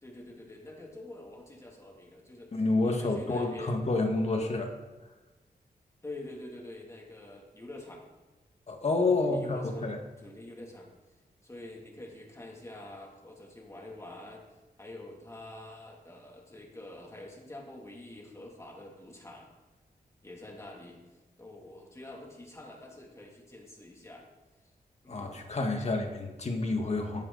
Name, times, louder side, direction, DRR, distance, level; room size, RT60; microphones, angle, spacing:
voice 1, 0.0-3.8 6.0-8.0 9.1-10.9 11.4-14.4 14.8-19.5 20.2-21.0 21.4-24.3 25.0-25.3, left 1 dB, 15° left, -1 dB, 2.8 m, -46 dB
voice 2, 2.5-4.7 8.7-10.0 25.1-27.2, left 3 dB, 45° left, 3 dB, 1.9 m, -29 dB
17.0 x 13.5 x 4.1 m, 1.1 s
wide cardioid pair, 170°, 16 cm